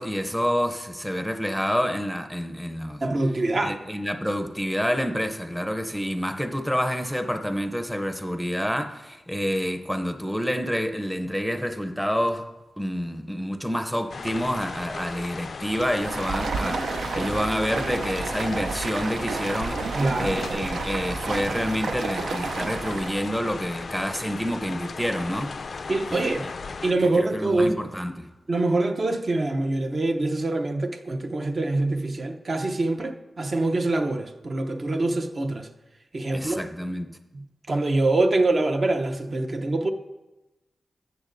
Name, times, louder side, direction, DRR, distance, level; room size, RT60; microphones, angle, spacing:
voice 1, 0.0-3.0 3.6-12.5 12.8-25.8 26.1-26.5 27.2-28.3 36.3-37.1, equal, ahead, 0.6 m, -28 dB
voice 2, 3.0-3.8 19.9-20.4 25.9-26.5 26.8-27.7 28.5-35.7 36.1-36.6 37.3-39.9, right 2 dB, 45° right, 0.6 m, -25 dB
sound 1, 14.1-26.9, left 4 dB, 60° left, 0.3 m, -36 dB
Stream, 15.7-23.3, right 4 dB, 90° right, 0.5 m, -31 dB
13.0 x 8.0 x 2.6 m
wide cardioid pair, 95°, 0 cm